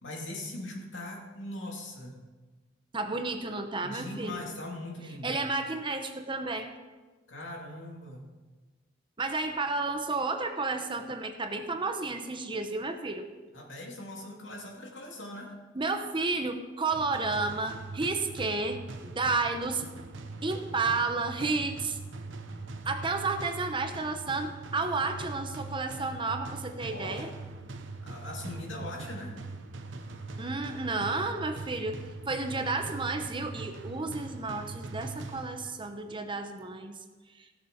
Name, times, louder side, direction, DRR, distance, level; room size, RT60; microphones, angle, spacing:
voice 1, 0.0-2.1 3.8-5.4 7.3-8.2 13.5-15.5 26.9-27.3 28.0-29.3, left 1 dB, 75° left, -1 dB, 2.6 m, -40 dB
voice 2, 2.9-4.5 5.2-6.7 9.2-13.3 15.7-19.8 20.4-22.0 22.9-27.3 30.4-37.0 37.3-37.5, right 3 dB, 25° right, 6 dB, 0.8 m, -32 dB
sound 1, 16.9-35.9, right 3 dB, 75° right, 0.9 m, -42 dB
16.5 x 7.0 x 5.2 m, 1.3 s
head